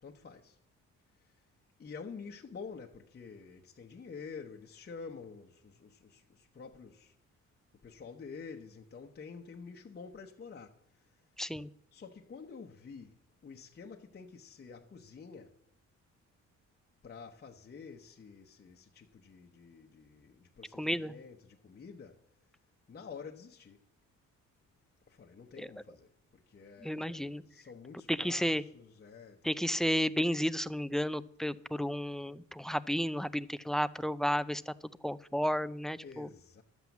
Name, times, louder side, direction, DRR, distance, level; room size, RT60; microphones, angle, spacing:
voice 1, 0.0-0.6 1.8-7.1 7.8-10.8 11.9-15.6 17.0-22.2 22.9-23.8 25.1-29.8 36.0-36.6, left 5 dB, 35° left, 1.0 m, -49 dB
voice 2, 11.4-11.7 20.8-21.1 25.6-25.7 26.8-27.4 28.1-28.6 29.4-34.7 35.0-36.3, equal, ahead, 0.5 m, -32 dB
11.5 x 7.8 x 7.1 m
cardioid pair, 90°, 30 cm